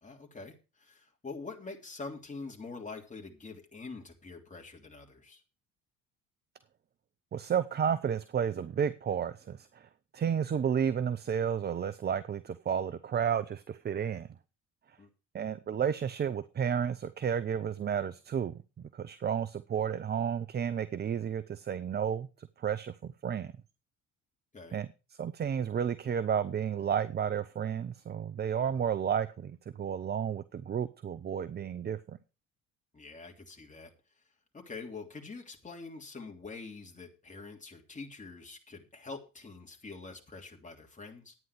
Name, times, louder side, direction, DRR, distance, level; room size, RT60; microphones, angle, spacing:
voice 1, 0.0-5.4 15.0-15.1 24.5-24.8 28.5-28.8 32.9-33.9 34.5-41.3, left 4 dB, 20° left, 3.1 m, -45 dB
voice 2, 7.3-14.3 15.3-23.5 24.7-24.9 25.2-32.2, right 8 dB, 25° right, 0.7 m, -32 dB
11.0 x 9.3 x 4.8 m
hypercardioid pair, 60°, 37 cm